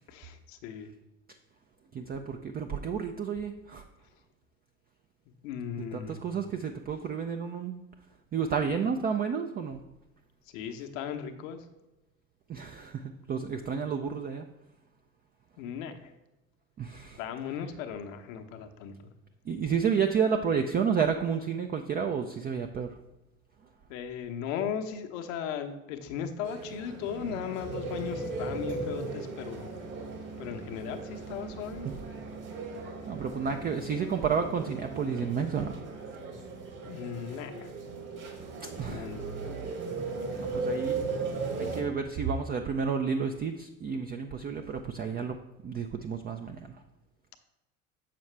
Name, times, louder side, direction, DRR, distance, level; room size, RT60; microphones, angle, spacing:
voice 1, 0.1-0.9 5.3-6.3 10.4-11.7 15.6-16.1 17.2-19.1 23.9-29.7 30.4-31.9 36.8-37.7 38.8-39.3, left 8 dB, 70° left, 6 dB, 0.8 m, -37 dB
voice 2, 1.9-3.8 5.9-7.7 8.3-9.8 12.5-14.5 16.8-17.2 19.5-22.9 31.9-32.0 32.7-32.8 33.1-35.8 38.6-39.1 40.4-41.0 41.6-45.4 45.6-46.7, right 6 dB, 25° right, 6 dB, 0.4 m, -31 dB
sound 1, 26.4-41.8, right 3 dB, 50° right, 2.0 m, -37 dB
7.0 x 5.9 x 3.2 m, 1.0 s
figure-of-eight pair, 60°, 40 cm